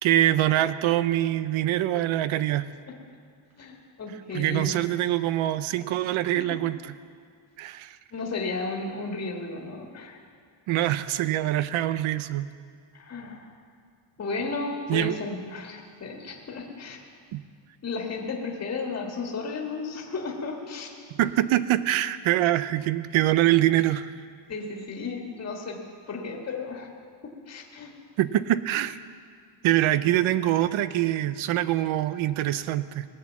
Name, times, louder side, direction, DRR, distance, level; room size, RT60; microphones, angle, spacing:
voice 1, 0.0-2.7 4.3-6.8 7.6-8.0 10.7-12.5 14.9-15.1 17.3-17.4 21.1-24.1 28.2-29.0 29.6-33.1, right 13 dB, 85° right, 14 dB, 0.7 m, -24 dB
voice 2, 3.6-4.8 6.4-6.5 8.1-10.2 12.9-13.5 14.2-17.0 17.8-20.9 24.5-25.8 26.1-26.9 27.2-27.9, left 3 dB, 35° left, 0 dB, 1.6 m, -34 dB
18.5 x 8.1 x 7.4 m, 2.2 s
cardioid pair, 155°, 47 cm